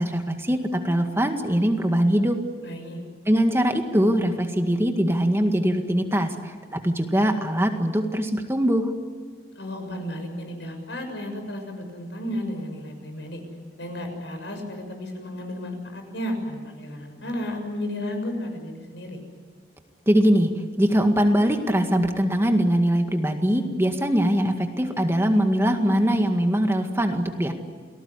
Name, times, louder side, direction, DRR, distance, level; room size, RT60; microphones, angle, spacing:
voice 1, 0.0-2.4 3.3-8.9 20.1-20.5 20.8-27.5, equal, 15° right, 5 dB, 1.9 m, -22 dB
voice 2, 2.6-3.0 9.6-13.4 13.8-19.2, left 1 dB, 90° left, 5 dB, 6.7 m, -33 dB
29.0 x 19.5 x 9.9 m, 1.5 s
head